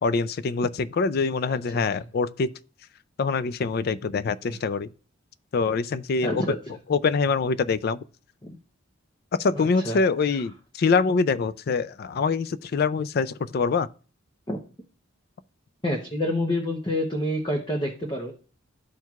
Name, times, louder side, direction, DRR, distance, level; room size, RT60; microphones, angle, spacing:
voice 1, 0.0-2.5 3.2-4.9 5.5-6.6 6.9-8.0 9.4-13.9, left 4 dB, 50° left, 0.3 m, -24 dB
voice 2, 1.5-1.8 4.5-4.6 6.2-6.6 8.4-8.6 9.5-10.0 14.5-14.6 15.8-18.3, left 1 dB, 25° left, 0.8 m, -28 dB
13.0 x 4.5 x 2.3 m
head